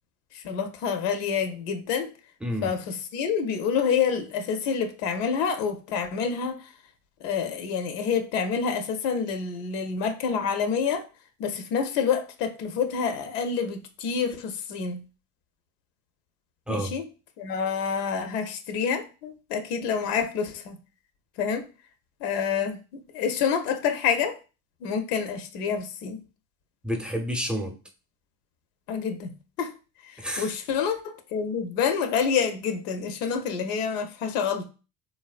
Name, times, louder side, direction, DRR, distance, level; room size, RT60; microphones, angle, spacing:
voice 1, 0.3-2.1 2.6-6.7 7.2-11.1 11.4-15.0 16.7-17.0 17.4-20.8 21.4-21.7 22.2-24.4 24.8-26.2 28.9-29.7 30.0-34.7, left 6 dB, 80° left, 0.6 m, -28 dB
voice 2, 2.4-2.8 16.7-17.0 26.8-27.8 30.2-30.5, equal, ahead, 0.6 m, -30 dB
3.2 x 2.1 x 2.4 m
hypercardioid pair, 55°, 47 cm